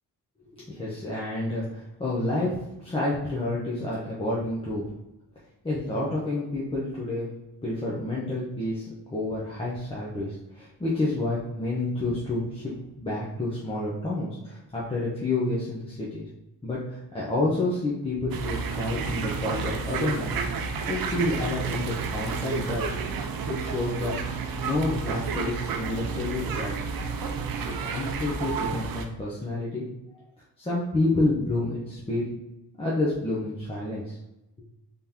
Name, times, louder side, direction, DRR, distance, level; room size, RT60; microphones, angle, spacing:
voice 1, 0.4-4.9 5.6-7.4 7.6-16.2 16.6-20.4 20.9-22.9 23.5-24.2 24.6-26.7 27.9-29.8 30.6-32.3 32.8-34.2, left 2 dB, 15° left, -7 dB, 0.6 m, -29 dB
sound 1, 18.3-29.0, right 5 dB, 60° right, 0.5 m, -31 dB
3.7 x 3.5 x 2.8 m, 0.93 s
wide cardioid pair, 175°, 40 cm